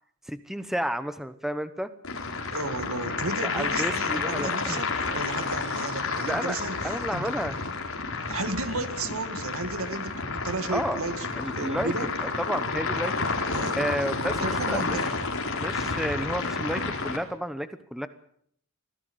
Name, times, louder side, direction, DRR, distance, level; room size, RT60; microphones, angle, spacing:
voice 1, 0.3-1.9 3.4-4.8 6.2-6.6 6.8-7.6 10.7-11.0 11.4-11.9 12.2-13.1 13.7-15.0 15.6-18.1, equal, ahead, 12 dB, 0.9 m, -31 dB
sound 1, 2.0-17.2, left 4 dB, 65° left, 4.3 m, -30 dB
voice 2, 2.5-7.3 7.6-7.7 8.3-12.1 13.5-13.8 14.4-15.1, right 2 dB, 70° right, 10 dB, 2.1 m, -33 dB
25.0 x 16.0 x 8.0 m, 0.66 s
head